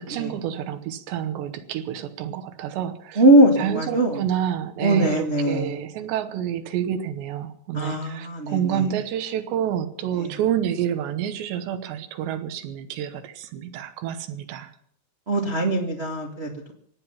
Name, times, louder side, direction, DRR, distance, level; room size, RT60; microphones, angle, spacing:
voice 1, 0.0-3.2 3.6-14.7, right 10 dB, 90° right, 8 dB, 3.3 m, -29 dB
voice 2, 3.2-4.2 4.8-5.8 7.7-8.8 15.3-16.7, right 1 dB, 45° right, -1 dB, 0.8 m, -20 dB
25.5 x 9.1 x 5.8 m, 0.64 s
omnidirectional pair, 4.9 m